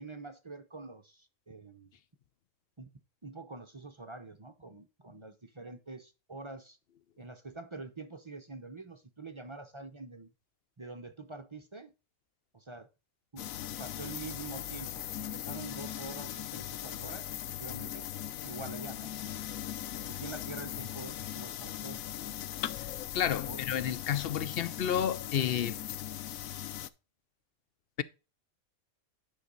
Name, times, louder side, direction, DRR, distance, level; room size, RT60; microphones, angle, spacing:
voice 1, 0.0-1.9 2.8-2.9 3.2-6.8 7.2-10.3 10.8-11.9 12.5-12.9 13.3-13.5 13.8-18.0 18.4-19.1 20.0-22.1 23.4-23.6, right 3 dB, 30° right, 0.6 m, -46 dB
sound 1, 13.4-26.9, left 12 dB, 75° left, 1.0 m, -39 dB
voice 2, 23.1-25.7, left 9 dB, 60° left, 0.6 m, -31 dB
10.0 x 5.4 x 3.9 m
omnidirectional pair, 1.5 m